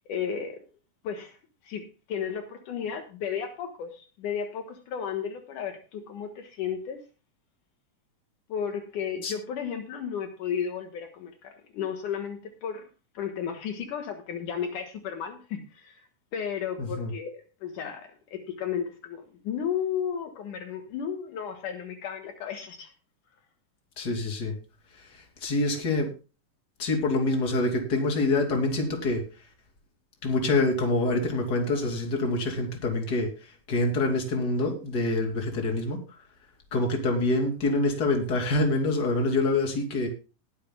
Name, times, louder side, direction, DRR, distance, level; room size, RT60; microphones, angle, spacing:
voice 1, 0.1-0.6 1.0-1.4 1.6-7.0 8.5-12.8 13.1-22.9, left 8 dB, 70° left, 2.8 m, -34 dB
voice 2, 16.8-17.1 24.0-24.6 24.9-26.1 26.8-29.5 30.2-36.2 36.7-40.1, left 2 dB, 30° left, 3.0 m, -26 dB
20.0 x 10.5 x 2.2 m
omnidirectional pair, 3.9 m